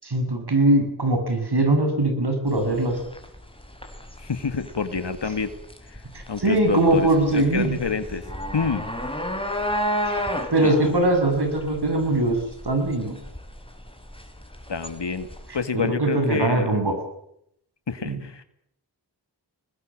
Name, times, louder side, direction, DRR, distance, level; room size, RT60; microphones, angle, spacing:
voice 1, 0.0-3.0 6.1-7.8 10.1-10.2 10.5-12.4 12.6-13.1 15.8-16.9 18.0-18.2, right 2 dB, 70° right, 5 dB, 7.4 m, -21 dB
sound 1, 2.5-15.6, equal, 15° left, 4.8 m, -33 dB
voice 2, 4.2-5.5 5.9-6.0 6.3-8.2 8.5-8.9 10.6-10.7 14.7-15.3 15.5-16.7 17.9-18.4, left 5 dB, 85° left, 10 dB, 2.1 m, -28 dB
25.5 x 20.5 x 7.6 m, 0.74 s
wide cardioid pair, 55°, 41 cm